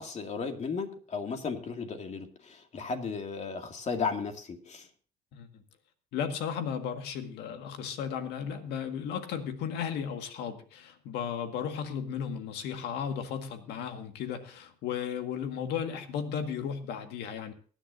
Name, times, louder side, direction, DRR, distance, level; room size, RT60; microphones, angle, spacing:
voice 1, 0.0-4.9, left 5 dB, 40° left, 5 dB, 2.3 m, -35 dB
voice 2, 5.3-5.6 6.1-17.5, left 7 dB, 85° left, 7 dB, 1.8 m, -35 dB
23.5 x 10.0 x 2.6 m, 0.40 s
cardioid pair, 110°, 17 cm